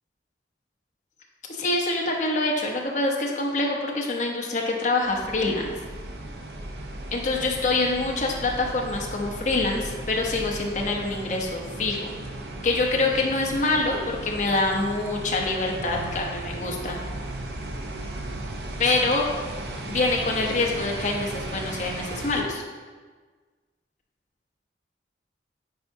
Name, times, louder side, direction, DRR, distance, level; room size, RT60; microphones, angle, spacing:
voice 1, 1.5-5.7 7.1-12.1 12.6-17.0 18.8-19.3 19.9-22.6, left 2 dB, 45° left, -1 dB, 0.9 m, -25 dB
sound 1, 5.0-22.4, right 1 dB, 65° right, 0.7 m, -36 dB
9.3 x 4.7 x 2.7 m, 1.4 s
head